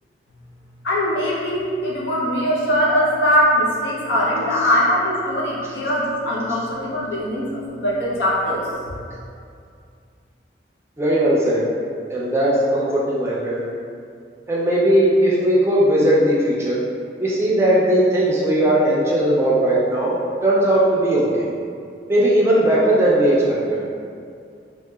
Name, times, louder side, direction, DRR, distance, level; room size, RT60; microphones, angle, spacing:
voice 1, 0.8-8.7, equal, 85° left, -5 dB, 0.7 m, -21 dB
voice 2, 11.0-11.6 12.1-13.6 14.5-16.8 17.2-20.2 20.4-21.5 22.1-23.8, right 1 dB, 15° right, -6 dB, 0.4 m, -18 dB
3.0 x 2.7 x 2.3 m, 2.3 s
head